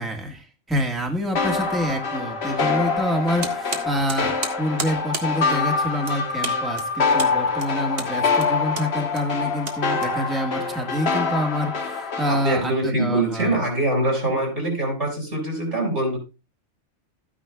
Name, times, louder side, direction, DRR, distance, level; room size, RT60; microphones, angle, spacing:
voice 1, 0.0-4.3 4.6-13.6, equal, ahead, 2 dB, 1.4 m, -27 dB
sound 1, 1.4-12.6, left 4 dB, 60° left, 1.4 m, -25 dB
sound 2, 3.4-10.6, right 4 dB, 55° right, 1.5 m, -34 dB
voice 2, 12.3-16.2, right 1 dB, 70° right, 0 dB, 5.7 m, -23 dB
13.5 x 9.8 x 2.3 m, 0.28 s
omnidirectional pair, 1.2 m